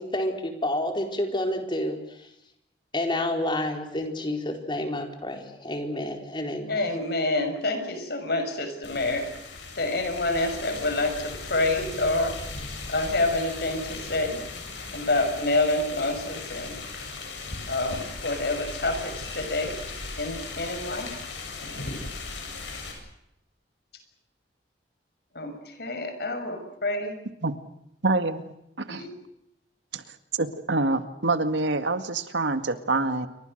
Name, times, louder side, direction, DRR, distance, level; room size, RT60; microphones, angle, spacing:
voice 1, 0.0-2.3 2.9-6.9, left 1 dB, 25° left, 3 dB, 4.4 m, -29 dB
voice 2, 6.7-9.2 9.8-12.3 12.9-14.4 14.9-16.7 17.7-19.8 20.2-21.1 25.3-25.5 25.8-27.1 28.9-29.1, left 2 dB, 60° left, 7 dB, 6.3 m, -27 dB
sound 1, 8.8-22.9, left 3 dB, 85° left, 7.9 m, -37 dB
voice 3, 28.0-28.4 28.8-29.1 29.9-30.0 30.4-33.3, right 2 dB, 90° right, 9 dB, 2.0 m, -26 dB
29.0 x 24.5 x 6.6 m, 0.82 s
head